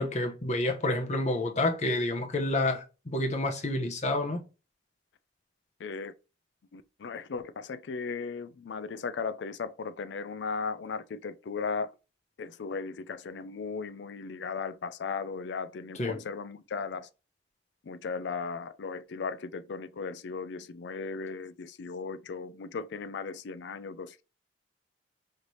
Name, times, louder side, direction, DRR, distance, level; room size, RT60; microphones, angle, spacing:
voice 1, 0.0-4.4 16.0-16.2, left 2 dB, 40° left, 0.7 m, -29 dB
voice 2, 5.8-6.1 6.7-12.0 12.4-17.1 17.8-24.2, left 5 dB, 65° left, 0.4 m, -36 dB
4.0 x 3.2 x 3.0 m
head